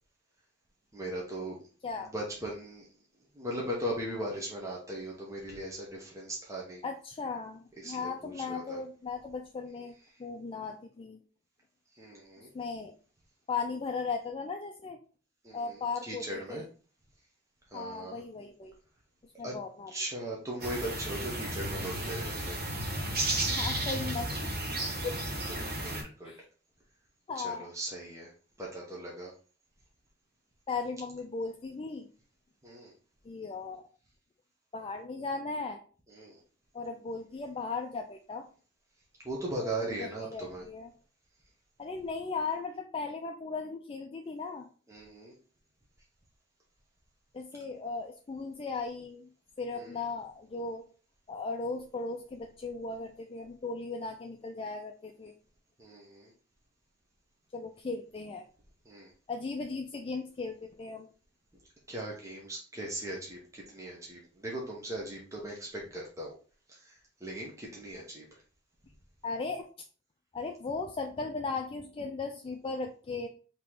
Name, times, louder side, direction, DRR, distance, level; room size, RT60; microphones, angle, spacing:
voice 1, 0.9-1.6 2.0-2.9 3.3-6.8 7.8-8.8 10.1-10.2 11.9-12.5 15.4-16.6 17.7-18.2 19.4-19.5 19.9-22.6 25.2-26.3 27.4-28.3 28.6-29.3 32.6-32.9 36.1-36.4 39.2-40.6 44.9-45.3 49.7-50.0 55.8-56.3 58.8-59.1 61.9-66.3 66.7-68.4, right 1 dB, 15° right, -3 dB, 0.8 m, -39 dB
voice 2, 6.8-9.9 10.2-11.2 12.5-12.9 13.5-15.0 15.5-16.6 17.7-18.7 19.4-19.9 23.5-24.6 25.0-25.2 26.2-26.4 27.3-27.7 30.7-32.1 33.3-33.8 34.7-35.8 36.7-38.5 39.6-40.9 41.8-44.7 47.3-49.3 49.6-50.8 51.3-55.3 57.5-58.4 59.3-61.1 69.2-69.7 70.3-73.3, left 4 dB, 30° left, 3 dB, 0.4 m, -37 dB
sound 1, 20.6-26.0, right 1 dB, 50° right, 1.2 m, -33 dB
3.7 x 2.9 x 4.6 m, 0.39 s
head